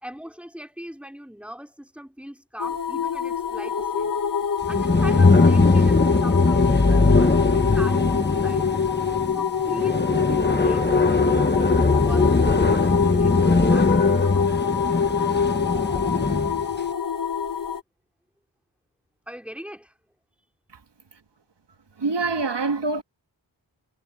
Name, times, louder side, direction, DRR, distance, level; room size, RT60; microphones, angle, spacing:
voice 1, 0.0-4.1 4.7-8.9 9.3-14.5 19.3-20.0 20.4-20.5, equal, 5° right, 4.5 m, -40 dB
sound 1, 2.6-17.8, left 7 dB, 45° left, 1.7 m, -25 dB
sound 2, 4.6-16.6, left 3 dB, 20° left, 1.2 m, -20 dB
voice 2, 22.0-23.0, right 3 dB, 60° right, 2.0 m, -25 dB
wide cardioid pair, 65°, 46 cm